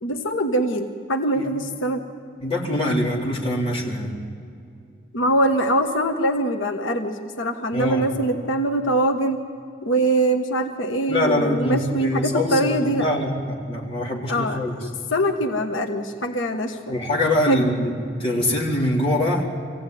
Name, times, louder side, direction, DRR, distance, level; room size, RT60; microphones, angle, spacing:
voice 1, 0.0-2.0 5.1-9.4 9.8-13.1 14.3-17.0 17.5-17.7, right 1 dB, 90° left, 4 dB, 1.4 m, -23 dB
voice 2, 2.4-4.2 7.7-8.1 11.1-14.7 16.9-17.9 18.2-19.5, left 1 dB, 30° left, -4 dB, 3.8 m, -23 dB
25.0 x 16.5 x 9.4 m, 2.4 s
head